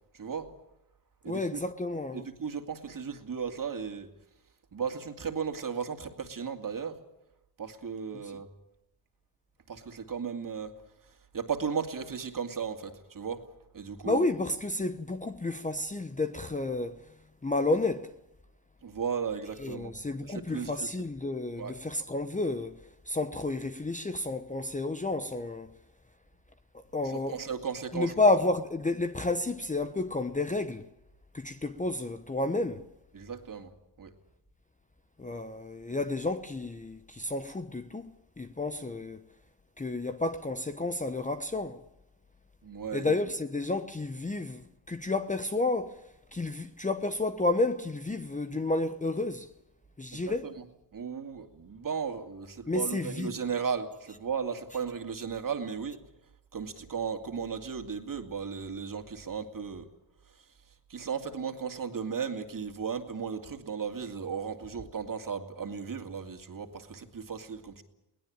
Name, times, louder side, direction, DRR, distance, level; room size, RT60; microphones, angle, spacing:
voice 1, 0.1-0.5 1.2-1.6 2.1-4.1 4.7-7.0 7.6-8.5 9.7-10.7 11.3-13.4 13.7-14.3 18.8-19.9 20.3-20.9 21.6-21.8 27.0-28.1 33.1-33.7 34.0-34.1 42.6-43.1 50.4-50.6 50.9-56.0 56.5-59.9 60.9-67.8, right 6 dB, 40° right, 2.6 m, -35 dB
voice 2, 1.3-2.2 8.2-8.3 14.0-17.0 17.4-18.1 19.6-22.8 23.1-25.7 26.9-27.4 27.9-30.9 31.3-32.8 35.2-39.2 39.8-41.8 42.9-46.0 46.3-49.5 50.0-50.5 52.7-53.3, left 2 dB, 15° left, 0.9 m, -31 dB
23.0 x 18.0 x 8.8 m
cardioid pair, 80°, 49 cm